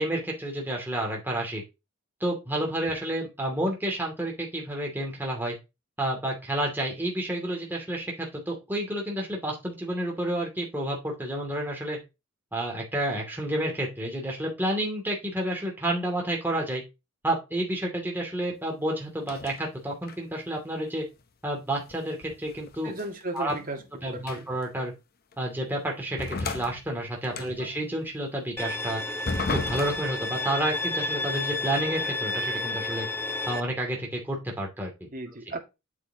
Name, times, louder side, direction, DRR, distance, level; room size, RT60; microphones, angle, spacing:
voice 1, 0.0-1.6 2.2-5.5 6.0-12.0 12.5-16.8 17.2-21.0 21.4-22.9 23.3-23.5 24.0-24.9 25.4-29.0 29.5-33.1 33.5-35.1, right 1 dB, 10° right, -1 dB, 2.5 m, -30 dB
sound 1, 19.2-19.6 20.0-20.4 21.9-23.9 24.2-24.6 25.3-25.4 26.2-27.7 29.3-30.2, left 3 dB, 45° left, 0.8 m, -34 dB
voice 2, 22.8-23.8 24.1-24.5 27.4-27.6 35.1-35.6, right 2 dB, 40° right, 2 dB, 2.0 m, -36 dB
Bowed string instrument, 28.6-33.6, left 2 dB, 10° left, 0.7 m, -31 dB
8.4 x 7.5 x 2.9 m, 0.25 s
head